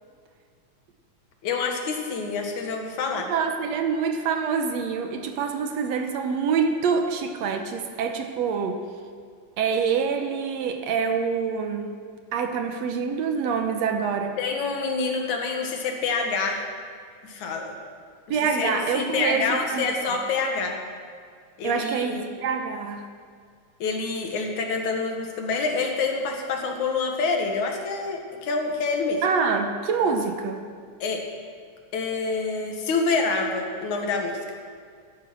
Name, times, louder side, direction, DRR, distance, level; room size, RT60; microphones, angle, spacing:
voice 1, 1.4-3.3 14.4-16.6 17.2-17.7 18.3-20.8 21.6-22.3 23.8-29.2 31.0-31.2 31.9-34.4, left 4 dB, 80° left, 2 dB, 3.1 m, -27 dB
voice 2, 3.1-8.8 9.6-12.0 12.3-14.4 18.3-20.2 21.6-23.1 29.2-30.7, right 6 dB, 70° right, 6 dB, 2.0 m, -26 dB
16.5 x 12.0 x 6.3 m, 2.1 s
omnidirectional pair, 3.4 m